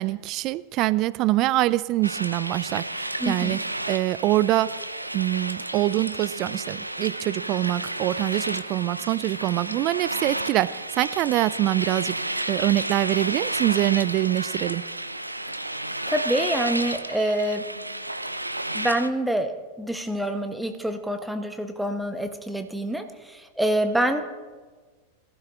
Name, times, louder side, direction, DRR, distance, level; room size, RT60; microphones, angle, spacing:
voice 1, 0.0-3.6 3.9-4.8 5.1-12.2 12.5-14.8, right 16 dB, 40° right, 19 dB, 0.4 m, -24 dB
sound 1, 2.0-19.1, right 1 dB, 85° right, 0.7 m, -32 dB
voice 2, 3.2-3.6 16.1-17.7 18.7-24.2, right 1 dB, 5° right, 7 dB, 1.3 m, -26 dB
21.5 x 15.0 x 3.8 m, 1.4 s
figure-of-eight pair, 90°, 0 cm